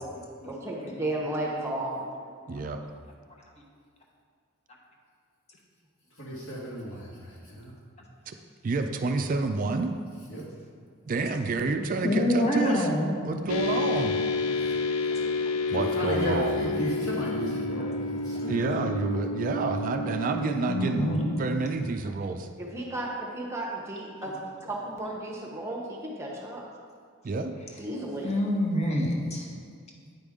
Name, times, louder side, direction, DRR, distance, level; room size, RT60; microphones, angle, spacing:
voice 1, 0.4-1.9 15.7-15.9 22.6-24.3 24.7-26.6 27.8-28.4, right 1 dB, 15° right, -2 dB, 0.9 m, -34 dB
voice 2, 2.5-2.8 8.3-8.4 8.6-9.9 11.1-12.9 13.2-14.2 15.7-16.6 18.5-22.5 27.2-27.5, right 3 dB, 40° right, 6 dB, 0.3 m, -29 dB
voice 3, 6.1-7.7 10.3-10.5 10.8-10.9 14.6-14.7 15.7-18.7, right 1 dB, 70° left, -6 dB, 2.0 m, -34 dB
voice 4, 12.0-13.1 15.1-15.3 20.7-21.3 24.2-24.3 28.2-29.5, left 1 dB, 30° left, -1 dB, 1.0 m, -26 dB
sound 1, 13.5-21.8, left 3 dB, 85° left, 0.4 m, -30 dB
9.3 x 5.2 x 3.6 m, 2.1 s
head